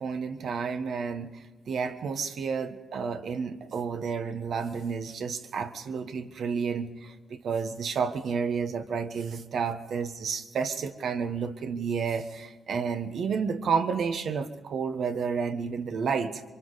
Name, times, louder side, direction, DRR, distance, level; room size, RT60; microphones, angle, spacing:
voice 1, 0.0-16.4, right 5 dB, 70° right, 8 dB, 1.3 m, -31 dB
28.0 x 24.0 x 4.1 m, 1.3 s
supercardioid pair, 55°, 0 cm